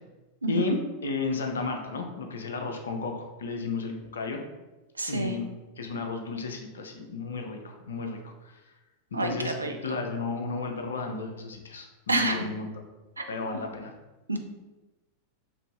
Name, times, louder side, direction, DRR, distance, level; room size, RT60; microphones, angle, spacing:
voice 1, 0.4-0.8 5.0-5.4 9.1-9.7 12.1-12.5 13.2-13.3 13.5-13.6 14.3-14.4, right 2 dB, 80° right, 4 dB, 0.4 m, -27 dB
voice 2, 1.0-4.4 5.1-5.5 5.8-8.6 9.1-12.7 13.3-13.9, left 4 dB, 65° left, 3 dB, 0.4 m, -33 dB
3.0 x 2.5 x 3.0 m, 1.1 s
figure-of-eight pair, 90°, 0 cm